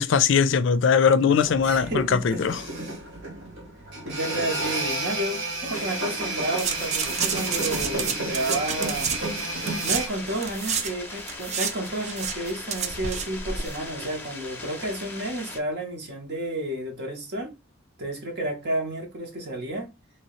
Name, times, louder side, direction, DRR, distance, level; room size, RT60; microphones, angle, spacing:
voice 1, 0.0-2.6, left 6 dB, 65° left, 0.4 m, -20 dB
sound 1, 1.4-10.1, right 2 dB, 80° right, 1.1 m, -31 dB
voice 2, 1.6-2.4 4.0-9.1 9.8-17.5 18.0-19.9, right 1 dB, 55° right, 1.0 m, -31 dB
sound 2, 5.7-15.6, left 2 dB, 10° left, 0.7 m, -39 dB
sound 3, 6.6-10.9 11.2-13.8 14.0-14.1, right 6 dB, 35° right, 0.4 m, -30 dB
3.0 x 2.8 x 3.1 m
head